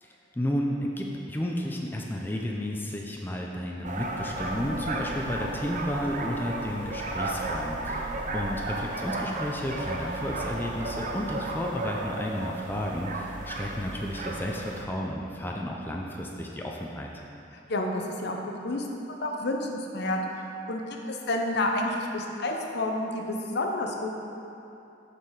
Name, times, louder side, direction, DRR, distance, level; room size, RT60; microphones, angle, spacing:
voice 1, 0.0-17.1, left 1 dB, 10° left, -1 dB, 0.4 m, -32 dB
sound 1, 3.8-14.8, right 2 dB, 45° right, 0.6 m, -34 dB
voice 2, 17.7-18.4 18.6-24.1, left 1 dB, 60° left, 2 dB, 0.7 m, -30 dB
6.8 x 5.6 x 4.7 m, 2.8 s
head